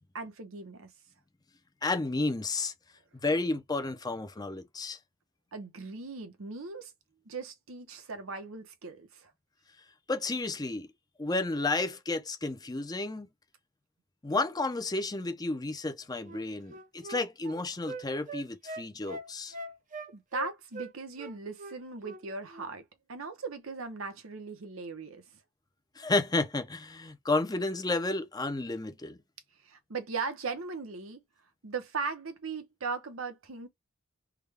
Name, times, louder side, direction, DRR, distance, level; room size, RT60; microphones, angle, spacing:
voice 1, 0.1-0.9 5.5-6.9 7.2-9.3 20.1-22.8 23.1-25.2 29.6-31.2 31.6-33.7, right 4 dB, 80° right, 0.9 m, -38 dB
voice 2, 1.8-2.7 3.2-5.0 10.1-10.9 11.2-13.3 14.2-19.5 26.0-29.2, left 2 dB, 20° left, 0.5 m, -31 dB
Wind instrument woodwind instrument, 16.2-20.9 21.2-22.2 22.5-22.7, right 1 dB, 35° right, 0.6 m, -41 dB
3.5 x 2.3 x 3.3 m
head